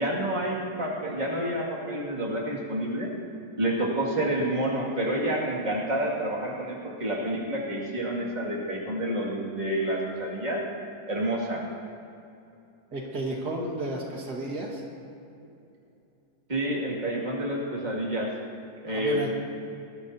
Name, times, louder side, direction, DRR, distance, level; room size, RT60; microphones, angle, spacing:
voice 1, 0.0-3.1 3.6-10.6 11.1-11.6 16.5-18.3 18.8-19.3, right 1 dB, 25° right, -4 dB, 2.4 m, -29 dB
voice 2, 12.9-14.8 18.9-19.3, right 1 dB, 80° right, -2 dB, 2.4 m, -33 dB
20.5 x 13.5 x 2.8 m, 2.7 s
omnidirectional pair, 1.7 m